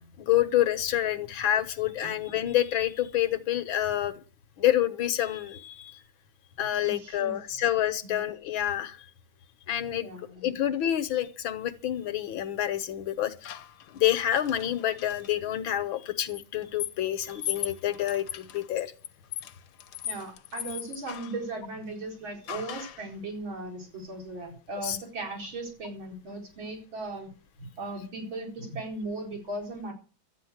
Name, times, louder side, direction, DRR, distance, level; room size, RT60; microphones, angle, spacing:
voice 1, 0.2-4.2 4.6-6.0 6.6-9.1 9.7-10.1 10.4-13.6 13.9-18.9 24.8-25.0, left 12 dB, 80° left, 13 dB, 1.9 m, -28 dB
voice 2, 6.8-7.4 8.0-8.2 10.0-10.6 20.0-27.3 27.8-29.9, right 2 dB, 80° right, 1 dB, 5.2 m, -37 dB
sound 1, 13.4-15.3 16.3-21.4 22.5-23.1, left 10 dB, 60° left, 1.3 m, -39 dB
13.0 x 9.3 x 8.0 m, 0.37 s
omnidirectional pair, 2.2 m